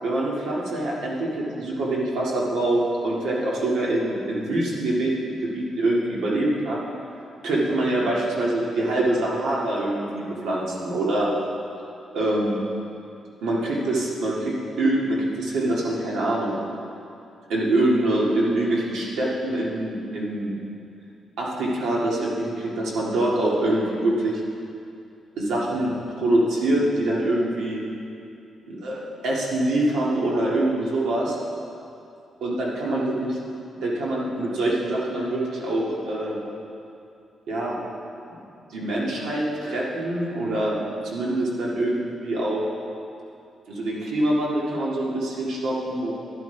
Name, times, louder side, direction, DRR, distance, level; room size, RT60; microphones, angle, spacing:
voice 1, 0.0-5.1 5.4-6.8 7.4-11.3 12.1-12.6 13.4-16.6 17.5-20.5 21.4-24.4 25.4-25.9 26.2-27.8 28.7-31.4 32.4-33.3 33.8-36.4 37.5-37.8 38.7-40.8 41.0-42.6 43.7-46.1, right 1 dB, 90° right, -4 dB, 2.2 m, -24 dB
12.0 x 11.5 x 3.5 m, 2.6 s
cardioid pair, 155°, 0 cm